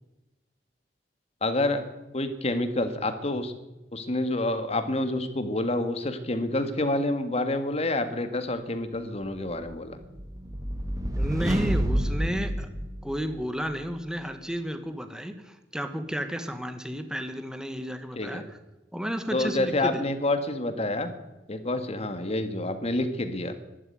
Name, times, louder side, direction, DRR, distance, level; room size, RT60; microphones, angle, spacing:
voice 1, 1.4-1.8 2.1-3.5 3.9-10.0 18.2-18.4 19.3-21.1 21.5-23.5, left 2 dB, 35° left, 8 dB, 1.7 m, -28 dB
sound 1, 9.7-13.5, equal, 20° right, 1.7 m, -29 dB
voice 2, 11.2-12.7 13.0-18.6 18.9-20.0, equal, 5° right, 8 dB, 1.3 m, -32 dB
12.0 x 12.0 x 9.5 m, 1.0 s
head